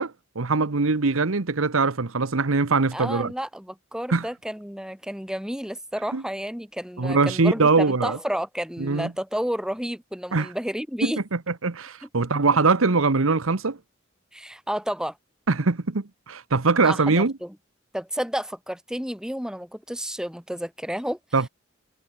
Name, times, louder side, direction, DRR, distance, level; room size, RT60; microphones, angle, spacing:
voice 1, 0.0-3.3 4.1-4.2 6.1-6.2 7.0-8.2 8.8-9.1 10.3-10.5 11.0-11.1 11.6-13.8 15.5-17.3 21.3-21.5, right 4 dB, 85° right, 1.1 m, -22 dB
voice 2, 2.9-11.2 12.0-12.1 14.3-15.2 16.8-17.6 17.9-21.2, equal, 5° right, 3.7 m, -31 dB
head